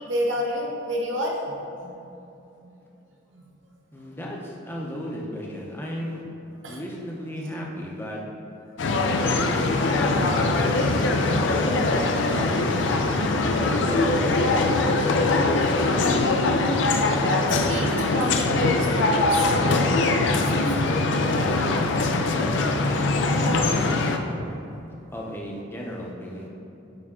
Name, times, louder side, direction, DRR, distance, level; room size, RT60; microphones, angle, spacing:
voice 1, 0.1-1.9 2.6-2.7 3.3-3.4 6.6-6.8 17.2-21.0, equal, 70° right, -2 dB, 1.0 m, -30 dB
voice 2, 3.9-6.2 6.7-8.2 9.1-12.8 13.6-15.2 15.7-16.2 22.3-23.9 25.1-26.5, equal, 10° left, -2 dB, 0.7 m, -35 dB
sound 1, 8.8-24.2, left 2 dB, 65° left, 0.5 m, -22 dB
8.9 x 3.5 x 3.7 m, 2.8 s
head